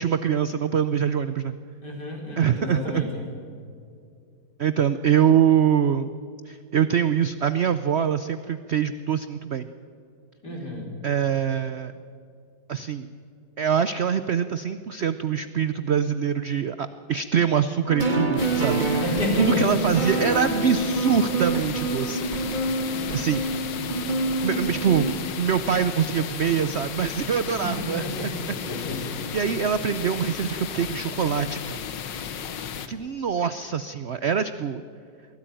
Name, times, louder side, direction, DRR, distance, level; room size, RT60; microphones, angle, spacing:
voice 1, 0.0-1.6 2.4-3.1 4.6-6.1 6.5-9.7 11.0-11.9 12.7-13.1 13.6-19.1 19.3-22.3 23.1-23.4 24.4-25.1 25.4-28.3 28.8-29.1 29.3-31.8 32.9-34.8, right 8 dB, 70° right, 12 dB, 0.6 m, -24 dB
voice 2, 1.8-3.1 10.4-10.9 19.0-19.8 27.6-28.3 28.7-29.2, left 1 dB, 65° left, -1 dB, 5.5 m, -30 dB
sound 1, 17.9-25.1, right 2 dB, 25° right, 2.2 m, -26 dB
sound 2, 18.4-32.9, left 7 dB, 85° left, 1.8 m, -34 dB
23.0 x 16.5 x 9.0 m, 2.5 s
omnidirectional pair, 1.9 m